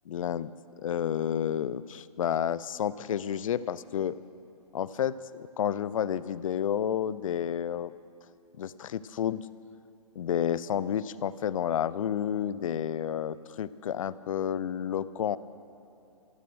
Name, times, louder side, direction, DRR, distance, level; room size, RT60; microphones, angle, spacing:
voice 1, 0.1-0.5 0.8-4.1 4.7-5.1 5.6-7.9 8.6-9.4 10.2-15.4, left 9 dB, 60° left, 17 dB, 0.5 m, -30 dB
14.5 x 12.5 x 6.2 m, 2.9 s
hypercardioid pair, 130°, 19 cm